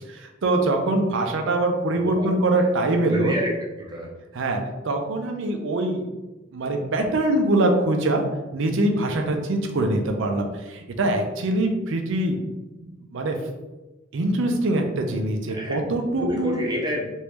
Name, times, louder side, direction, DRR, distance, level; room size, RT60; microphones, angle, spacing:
voice 1, 0.1-3.3 4.3-6.0 6.5-8.2 8.5-12.4 13.1-13.4 14.1-16.6, right 2 dB, 65° right, 4 dB, 0.5 m, -23 dB
voice 2, 1.9-2.3 2.6-2.7 3.1-4.1 15.5-15.7 16.1-17.1, left 1 dB, 20° right, -3 dB, 0.8 m, -28 dB
3.1 x 2.6 x 3.3 m, 1.1 s
head